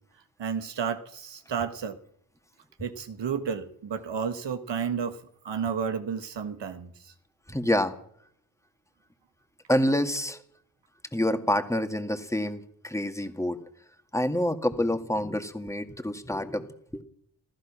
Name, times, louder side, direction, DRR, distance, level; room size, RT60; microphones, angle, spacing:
voice 1, 0.4-2.0 2.8-5.2 5.4-7.1, right 6 dB, 85° right, 8 dB, 1.6 m, -32 dB
voice 2, 7.5-7.9 9.7-10.4 11.1-13.6 14.1-17.0, left 1 dB, 5° left, 7 dB, 2.0 m, -27 dB
14.5 x 14.5 x 6.1 m, 0.64 s
cardioid pair, 55°, 42 cm